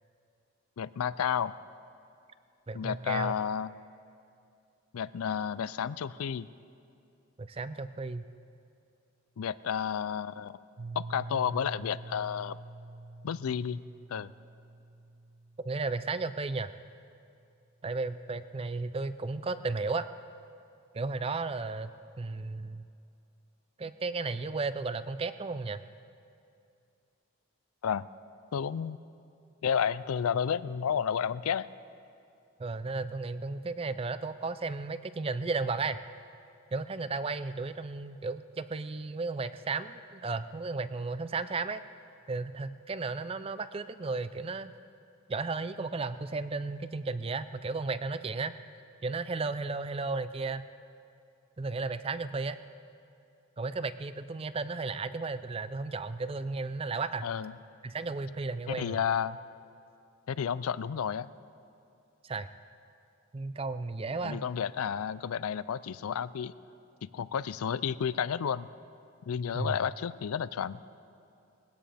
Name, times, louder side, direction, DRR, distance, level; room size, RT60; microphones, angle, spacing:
voice 1, 0.8-1.6 2.7-3.7 4.9-6.5 9.4-10.6 11.0-12.6 13.2-13.8 14.1-14.3 27.8-28.1 28.5-29.0 29.6-31.7 57.2-57.5 58.7-59.4 60.3-61.3 64.2-66.5 67.0-68.7 69.3-70.8, left 7 dB, 85° left, 17 dB, 0.4 m, -31 dB
voice 2, 2.7-3.3 7.4-8.2 15.6-16.7 17.8-20.1 20.9-21.9 22.2-22.9 23.8-25.8 32.6-36.0 36.7-41.8 42.3-44.7 45.3-48.5 49.0-50.7 51.6-52.6 53.6-57.3 57.8-59.0 62.2-62.5 63.3-64.4 69.5-69.8, right 3 dB, 25° right, 13 dB, 0.4 m, -34 dB
Piano, 10.8-16.4, right 2 dB, 90° right, 1.0 m, -46 dB
21.0 x 16.5 x 3.4 m, 2.6 s
head